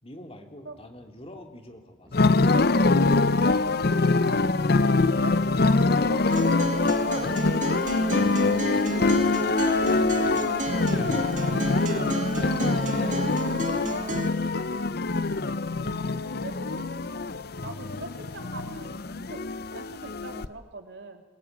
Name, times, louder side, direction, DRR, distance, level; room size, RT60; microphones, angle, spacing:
voice 1, 0.0-2.4 8.1-9.4 9.7-11.0 11.4-14.0, left 1 dB, 35° left, 4 dB, 2.8 m, -46 dB
sound 1, 0.7-6.3, equal, 15° right, 3.2 m, -55 dB
sound 2, 2.1-20.5, left 3 dB, 60° left, 0.8 m, -24 dB
voice 2, 3.8-6.8 15.7-16.9 17.6-19.0 19.3-19.4 19.7-21.2, right 2 dB, 75° right, 4 dB, 3.0 m, -42 dB
Acoustic guitar, 6.3-14.3, right 2 dB, 45° right, 2.3 m, -33 dB
22.5 x 21.5 x 9.1 m, 1.3 s
head